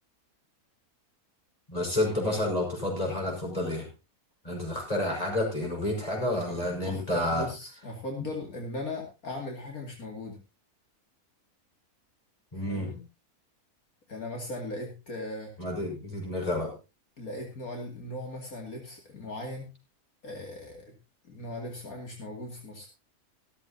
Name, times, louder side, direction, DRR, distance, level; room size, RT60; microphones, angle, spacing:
voice 1, 1.7-3.9 4.4-7.5 12.5-12.9 15.6-16.8, left 1 dB, 25° left, 0 dB, 5.7 m, -30 dB
voice 2, 6.8-10.4 12.7-13.0 14.1-15.5 17.2-19.7 20.2-20.9 21.2-22.9, left 2 dB, 70° left, 1 dB, 2.9 m, -38 dB
15.0 x 13.5 x 2.8 m, 0.27 s
omnidirectional pair, 1.6 m